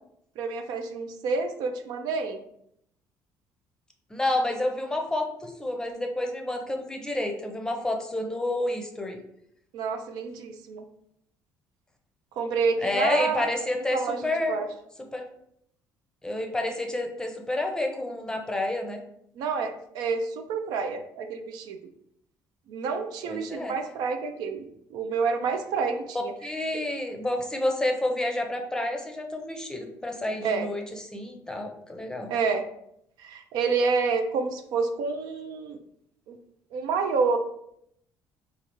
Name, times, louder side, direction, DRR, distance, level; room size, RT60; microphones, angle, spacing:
voice 1, 0.4-2.4 9.7-10.8 12.4-13.5 13.9-14.2 14.5-14.7 19.4-21.8 22.7-24.6 24.9-26.3 30.4-30.7 32.3-32.6 33.2-35.8 36.3-36.4 36.7-37.4, right 4 dB, 80° right, 6 dB, 0.4 m, -28 dB
voice 2, 4.1-9.2 12.8-14.6 15.1-15.3 16.2-19.0 23.2-23.7 26.4-30.8 31.1-32.3, left 1 dB, 10° left, 3 dB, 0.6 m, -29 dB
4.1 x 2.4 x 2.9 m, 0.74 s
cardioid pair, 100°, 7 cm